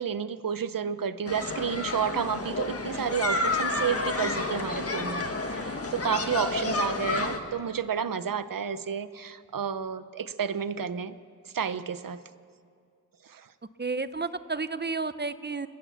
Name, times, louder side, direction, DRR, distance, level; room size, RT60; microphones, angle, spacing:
voice 1, 0.0-11.1 11.4-12.2 13.2-13.5, right 7 dB, 85° right, 13 dB, 0.8 m, -31 dB
sound 1, 1.3-7.4, left 2 dB, 45° left, 1.7 m, -30 dB
voice 2, 13.8-15.7, right 4 dB, 30° right, 13 dB, 0.9 m, -31 dB
29.5 x 16.0 x 7.2 m, 2.2 s
wide cardioid pair, 60°, 33 cm